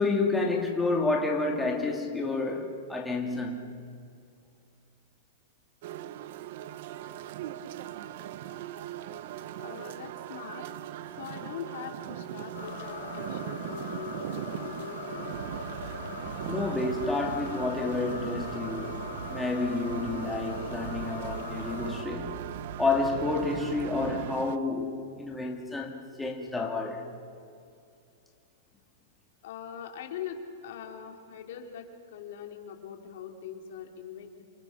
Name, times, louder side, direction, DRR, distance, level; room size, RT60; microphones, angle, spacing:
voice 1, 0.0-3.7 16.5-22.4 22.8-27.0, left 3 dB, 5° left, 2.5 m, -30 dB
sound 1, 5.8-24.6, right 12 dB, 60° right, 0.9 m, -40 dB
voice 2, 9.6-10.6 11.2-15.6 29.4-34.4, left 8 dB, 65° left, 3.2 m, -42 dB
sound 2, 12.5-22.0, left 7 dB, 85° left, 4.3 m, -41 dB
sound 3, 15.3-24.3, right 7 dB, 85° right, 1.0 m, -41 dB
29.0 x 28.0 x 6.0 m
hypercardioid pair, 140°, 0 cm